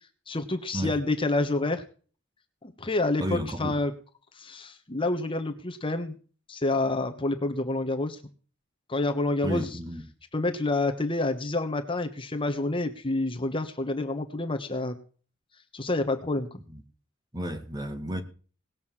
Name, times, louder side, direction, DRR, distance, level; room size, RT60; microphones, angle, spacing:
voice 1, 0.3-1.8 2.6-3.9 4.3-6.2 6.5-8.2 8.9-9.7 10.3-14.9 15.7-16.5, left 2 dB, 25° left, 1.2 m, -28 dB
voice 2, 3.2-3.8 9.4-10.0 16.7-16.8 17.3-18.2, equal, 20° right, 1.7 m, -32 dB
19.0 x 6.3 x 7.4 m
head